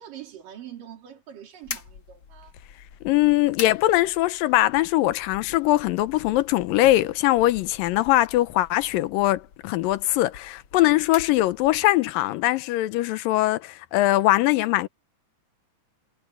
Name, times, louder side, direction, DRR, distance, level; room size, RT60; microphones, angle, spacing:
voice 1, 0.0-2.5 10.7-10.9, right 10 dB, 75° right, 5.0 m, -43 dB
sound 1, 1.6-12.0, left 7 dB, 50° left, 1.8 m, -43 dB
voice 2, 3.0-14.9, left 16 dB, 85° left, 2.5 m, -21 dB
omnidirectional pair, 3.9 m